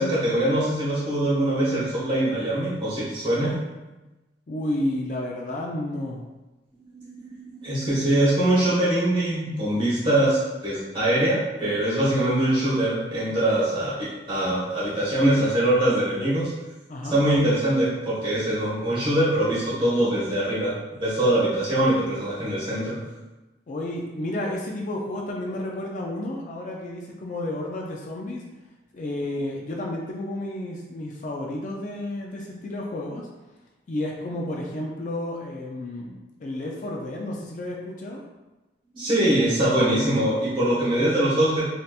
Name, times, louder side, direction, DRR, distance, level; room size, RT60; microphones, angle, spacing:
voice 1, 0.0-3.5 6.9-16.5 17.1-23.0 38.9-41.6, right 1 dB, 30° right, -9 dB, 1.4 m, -23 dB
voice 2, 4.5-6.2 16.9-17.2 23.7-28.4 28.9-33.3 33.9-38.2, left 1 dB, 45° left, -1 dB, 0.4 m, -31 dB
3.3 x 2.8 x 2.4 m, 1.1 s
head